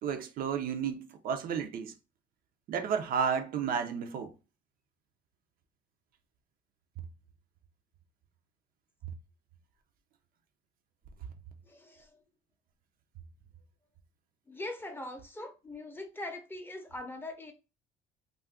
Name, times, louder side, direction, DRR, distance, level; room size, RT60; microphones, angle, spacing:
voice 1, 0.0-1.9 2.7-4.3, right 7 dB, 60° right, 0.4 m, -32 dB
voice 2, 11.6-12.2 14.5-17.5, left 2 dB, 10° left, 0.5 m, -42 dB
2.4 x 2.2 x 3.4 m
cardioid pair, 110°, 17 cm